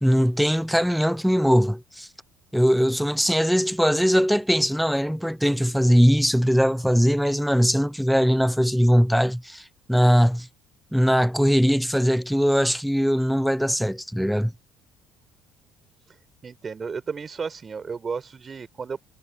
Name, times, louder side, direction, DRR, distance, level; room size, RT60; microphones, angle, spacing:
voice 1, 0.0-2.1 2.5-10.5 10.9-14.5, equal, ahead, 0.8 m, -21 dB
voice 2, 16.4-19.0, right 5 dB, 35° right, 4.8 m, -33 dB
supercardioid pair, 70°, 0 cm